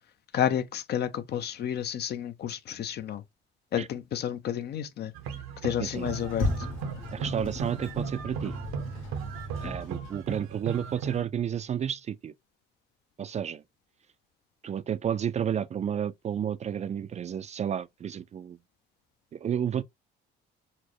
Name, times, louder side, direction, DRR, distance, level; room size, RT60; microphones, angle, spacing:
voice 1, 0.3-3.2 3.7-5.1 5.6-6.7, left 9 dB, 55° left, 0.5 m, -31 dB
sound 1, 5.1-11.2, right 6 dB, 85° right, 0.8 m, -37 dB
Sliding door, 5.9-10.4, left 2 dB, 85° left, 1.6 m, -35 dB
voice 2, 7.1-8.6 9.6-12.3 13.2-13.6 14.6-18.6 19.3-19.8, right 9 dB, 35° right, 0.4 m, -31 dB
4.1 x 2.1 x 3.0 m
supercardioid pair, 85°, 21 cm